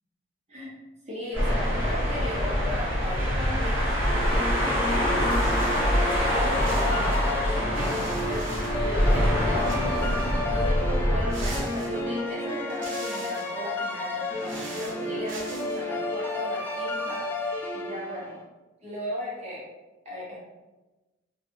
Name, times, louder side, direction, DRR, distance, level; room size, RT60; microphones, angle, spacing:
voice 1, 1.1-18.4 18.8-19.7 20.0-20.5, equal, 35° right, -6 dB, 0.8 m, -37 dB
sound 1, 1.3-11.6, equal, 15° right, 1.3 m, -25 dB
sound 2, 4.0-18.3, left 2 dB, 10° left, 0.3 m, -32 dB
sound 3, 5.3-6.3 6.6-9.3 9.6-10.4 11.3-12.3 12.7-13.6 14.2-15.8, right 3 dB, 80° right, 0.6 m, -44 dB
2.6 x 2.3 x 2.7 m, 1.1 s
head